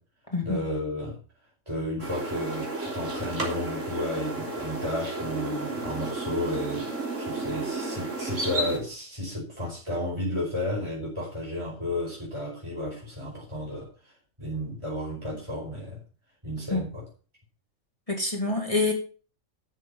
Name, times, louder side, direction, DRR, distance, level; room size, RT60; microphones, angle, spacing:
voice 1, 0.4-1.2 1.7-6.9 7.2-14.1 14.4-16.0 16.4-17.0, left 1 dB, 20° right, -3 dB, 5.3 m, -32 dB
sound 1, 2.0-8.8, right 2 dB, 60° right, 3.6 m, -32 dB
voice 2, 18.1-18.9, left 3 dB, 25° left, 1 dB, 2.5 m, -26 dB
13.0 x 7.2 x 5.7 m, 0.38 s
omnidirectional pair, 1.4 m